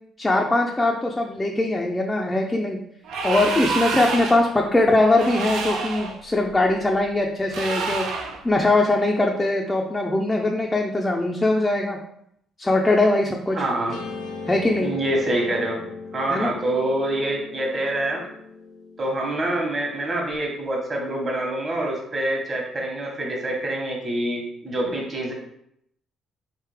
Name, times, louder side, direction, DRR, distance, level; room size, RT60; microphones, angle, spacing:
voice 1, 0.2-2.8 3.2-8.1 8.4-12.0 12.6-13.6 14.5-14.9 16.3-16.5, left 2 dB, 10° left, 0 dB, 0.4 m, -21 dB
sound 1, 3.0-4.5 5.1-6.2 7.5-8.4, right 4 dB, 80° right, 0.6 m, -28 dB
voice 2, 13.5-14.0 14.8-15.8 16.1-18.2 19.0-25.3, right 1 dB, 30° right, 0 dB, 1.1 m, -26 dB
Guitar, 13.9-20.3, left 4 dB, 60° left, 0.6 m, -38 dB
4.0 x 3.2 x 3.4 m, 0.72 s
cardioid pair, 130°, 0 cm